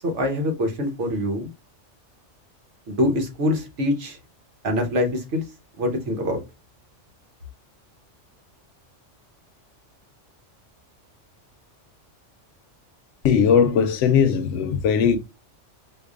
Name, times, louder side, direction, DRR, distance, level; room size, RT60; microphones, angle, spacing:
voice 1, 0.0-1.5 2.9-4.2 4.6-5.4 5.8-6.4, left 1 dB, 70° right, 1.2 m, -24 dB
voice 2, 13.2-15.2, left 7 dB, 75° left, 0.9 m, -19 dB
4.5 x 2.5 x 2.4 m
omnidirectional pair, 1.3 m